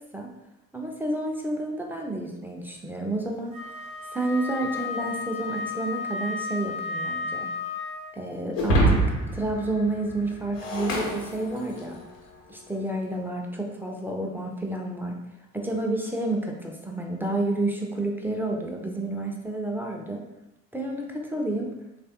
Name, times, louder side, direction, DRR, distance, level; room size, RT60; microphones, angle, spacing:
voice 1, 0.7-3.6 4.1-7.5 8.1-9.0 9.3-12.0 12.5-15.2 15.5-20.2 20.7-21.7, right 2 dB, 5° right, 0 dB, 0.4 m, -30 dB
Wind instrument woodwind instrument, 3.5-8.2, left 4 dB, 85° right, 0.8 m, -33 dB
Shatter, 8.5-12.0, right 1 dB, 80° left, 0.7 m, -26 dB
3.2 x 2.3 x 2.8 m, 0.91 s
figure-of-eight pair, 50°, 38 cm